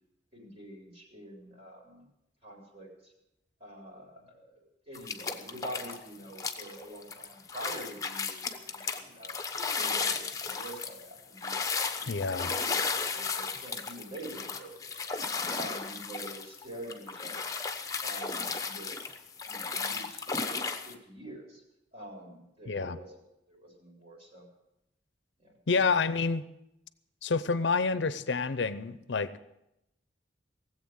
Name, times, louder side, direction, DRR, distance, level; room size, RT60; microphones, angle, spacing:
voice 1, 0.3-2.0 2.4-3.1 3.6-9.4 9.7-11.6 12.0-15.1 15.5-17.5 18.0-18.9 19.5-20.6 20.8-21.6 21.9-23.1 23.5-24.5 25.4-25.5, right 1 dB, 35° right, -1 dB, 3.9 m, -46 dB
sound 1, 4.9-6.0 6.3-20.9, left 5 dB, 20° left, 1.0 m, -34 dB
voice 2, 12.1-12.5 22.7-23.0 25.7-26.4 27.2-29.4, left 4 dB, 80° left, 15 dB, 0.7 m, -28 dB
18.0 x 8.0 x 8.0 m, 0.87 s
head